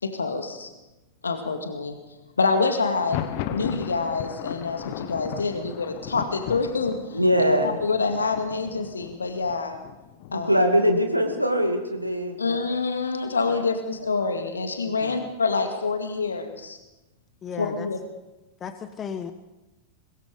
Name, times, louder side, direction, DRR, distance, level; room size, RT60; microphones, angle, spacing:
voice 1, 0.0-0.7 1.2-2.0 2.4-3.2 3.5-7.2 7.5-9.8 10.3-10.5 12.4-16.8 17.6-18.0, left 4 dB, 75° left, 5 dB, 2.2 m, -26 dB
Thunder, 2.9-10.6, left 11 dB, 45° left, 1.4 m, -36 dB
voice 2, 7.1-7.8 10.3-12.6 13.4-13.6 14.0-14.1 15.0-15.2, equal, 90° right, 3 dB, 2.3 m, -22 dB
voice 3, 15.0-15.3 17.4-17.9 18.6-19.3, left 7 dB, 25° left, 9 dB, 1.3 m, -35 dB
23.0 x 21.5 x 5.2 m, 1.0 s
figure-of-eight pair, 90°, 0 cm